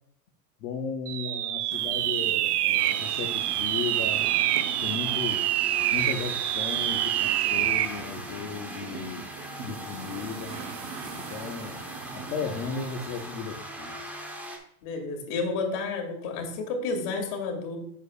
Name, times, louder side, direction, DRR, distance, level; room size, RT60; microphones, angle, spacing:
voice 1, 0.6-4.3 4.8-5.5 5.9-9.3 9.6-10.6 11.1-11.8 12.1-13.9, left 5 dB, 25° left, 2 dB, 0.3 m, -35 dB
sound 1, 1.1-8.0, right 14 dB, 70° right, 0.6 m, -26 dB
sound 2, 1.7-13.2, right 5 dB, 30° right, 0.9 m, -43 dB
sound 3, 2.8-14.6, right 1 dB, 5° right, 0.7 m, -41 dB
voice 2, 14.8-17.8, left 4 dB, 55° left, 3 dB, 2.4 m, -31 dB
8.1 x 7.0 x 2.3 m, 0.74 s
supercardioid pair, 135°, 49 cm